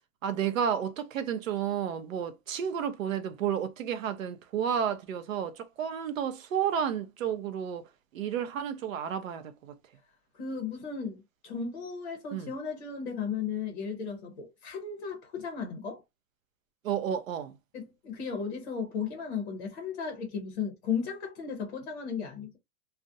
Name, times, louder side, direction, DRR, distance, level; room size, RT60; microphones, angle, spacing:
voice 1, 0.2-7.8 8.1-9.7 12.3-12.5 16.8-17.5, right 8 dB, 65° right, 0.6 m, -31 dB
voice 2, 10.3-16.0 17.7-22.6, left 6 dB, 35° left, 0.6 m, -35 dB
2.4 x 2.1 x 2.6 m
hypercardioid pair, 175°, 43 cm